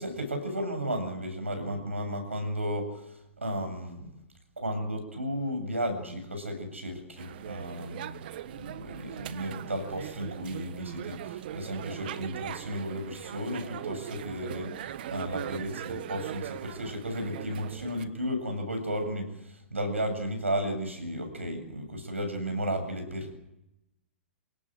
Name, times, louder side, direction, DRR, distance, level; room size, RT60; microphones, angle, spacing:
voice 1, 0.0-3.0 3.4-4.1 4.6-8.2 8.5-23.4, equal, 80° right, 6 dB, 7.7 m, -34 dB
sound 1, 7.2-18.0, right 11 dB, 50° right, 1.3 m, -40 dB
28.0 x 18.0 x 7.9 m, 0.85 s
figure-of-eight pair, 110°, 7 cm